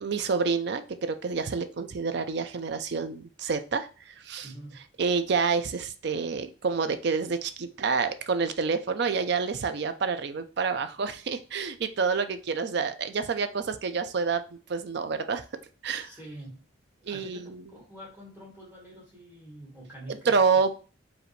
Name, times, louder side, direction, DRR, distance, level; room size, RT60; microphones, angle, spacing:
voice 1, 0.0-4.5 5.0-14.4 14.7-15.4 15.8-16.1 17.1-17.6 20.1-20.7, right 5 dB, 55° right, 10 dB, 0.4 m, -28 dB
voice 2, 4.4-4.8 16.0-16.6 17.1-20.3, right 1 dB, 10° right, -5 dB, 1.5 m, -46 dB
4.9 x 2.6 x 3.2 m, 0.36 s
head